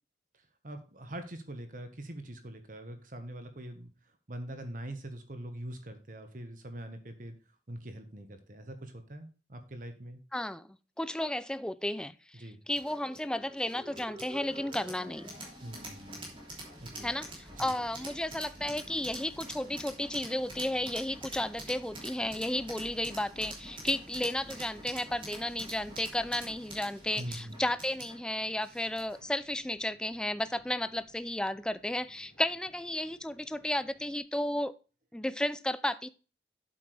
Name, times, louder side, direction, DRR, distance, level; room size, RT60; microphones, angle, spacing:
voice 1, 0.6-3.9 4.3-7.3 7.7-10.2 12.3-12.6 15.6-16.3 16.8-17.1 17.5-17.7 27.2-27.6, right 1 dB, 50° right, 1.3 m, -43 dB
voice 2, 10.3-10.7 11.0-15.3 17.0-34.7 35.1-36.1, left 1 dB, 5° left, 0.3 m, -33 dB
sound 1, 12.7-29.3, right 1 dB, 30° right, 3.2 m, -46 dB
sound 2, 14.4-34.2, left 1 dB, 50° left, 1.9 m, -62 dB
sound 3, 15.7-32.7, equal, 70° right, 2.4 m, -60 dB
8.7 x 7.8 x 3.3 m
head